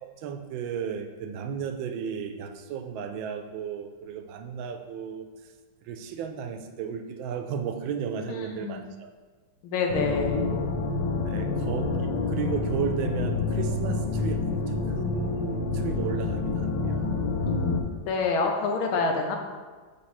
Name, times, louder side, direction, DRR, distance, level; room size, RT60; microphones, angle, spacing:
voice 1, 0.0-5.5 5.8-9.1 11.2-17.1, right 7 dB, 80° right, 6 dB, 1.3 m, -34 dB
voice 2, 8.3-8.8 9.6-10.5 17.4-17.7 18.1-19.4, left 4 dB, 90° left, 3 dB, 1.6 m, -27 dB
sound 1, 9.9-17.8, left 3 dB, 70° left, 1.3 m, -28 dB
6.8 x 3.3 x 4.2 m, 1.4 s
omnidirectional pair, 2.2 m